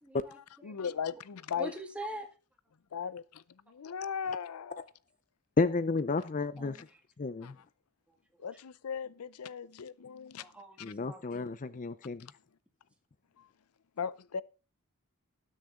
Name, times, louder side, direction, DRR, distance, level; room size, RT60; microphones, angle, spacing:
voice 1, 0.0-0.8 1.6-2.3 6.6-6.8 10.4-10.8 11.1-11.3, right 1 dB, 5° right, 1.8 m, -43 dB
voice 2, 0.6-1.7 2.9-3.4 3.7-4.9 7.4-7.6 8.4-10.5 10.8-10.9 13.4-13.5 14.0-14.4, left 7 dB, 90° left, 0.5 m, -38 dB
voice 3, 5.6-6.9 7.2-7.5 10.8-12.3, left 3 dB, 35° left, 0.5 m, -31 dB
19.5 x 6.6 x 3.6 m
head